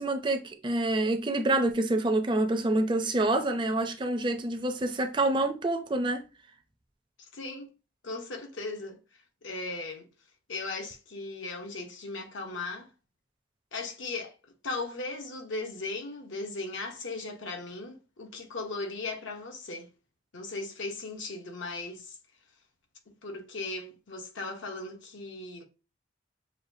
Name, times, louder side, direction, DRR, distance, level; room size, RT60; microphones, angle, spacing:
voice 1, 0.0-6.2, right 2 dB, 25° right, 0.4 m, -27 dB
voice 2, 7.3-7.7 8.0-9.0 9.4-10.1 10.5-12.9 13.7-14.3 14.6-19.9 20.3-22.2 23.2-25.6, left 3 dB, 80° left, 0.9 m, -37 dB
6.4 x 2.2 x 2.7 m
head